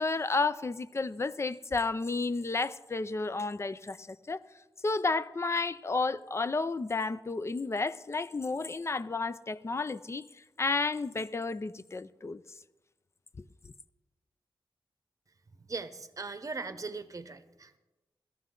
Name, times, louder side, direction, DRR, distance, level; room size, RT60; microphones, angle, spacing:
voice 1, 0.0-4.4 4.8-10.3 10.6-12.4 13.4-13.5, left 3 dB, 30° left, 0.4 m, -32 dB
voice 2, 15.6-17.8, right 4 dB, 40° right, 0.8 m, -39 dB
17.0 x 13.5 x 3.8 m
wide cardioid pair, 120°, 9 cm